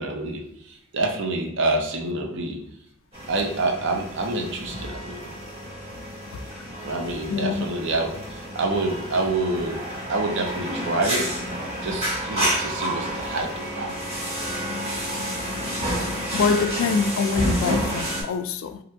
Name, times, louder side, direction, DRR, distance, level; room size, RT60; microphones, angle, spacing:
voice 1, 0.0-2.6 3.3-5.3 6.8-9.8 10.1-11.3 11.8-14.0, right 2 dB, 60° right, 0.6 m, -27 dB
sound 1, 3.1-18.2, equal, 30° right, 1.4 m, -30 dB
voice 2, 7.3-7.6 16.3-18.8, left 5 dB, 75° left, 0.3 m, -25 dB
2.8 x 2.4 x 3.3 m
head